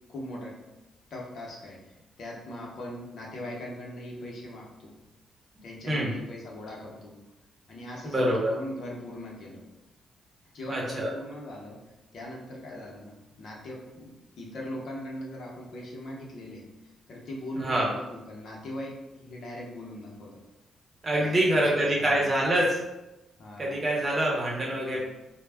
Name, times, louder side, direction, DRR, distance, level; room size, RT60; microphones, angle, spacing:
voice 1, 0.1-0.6 1.1-1.8 2.2-4.9 5.6-7.1 7.7-9.6 10.5-11.8 12.1-13.1 13.4-16.7 17.1-20.4 21.1-22.5 23.4-23.8 24.9-25.0, left 1 dB, 65° left, -2 dB, 0.7 m, -40 dB
voice 2, 8.1-8.5 10.7-11.1 17.6-17.9 21.0-22.8 23.6-25.0, right 1 dB, 35° right, -3 dB, 0.8 m, -25 dB
2.2 x 2.1 x 3.4 m, 0.98 s
cardioid pair, 85°, 0 cm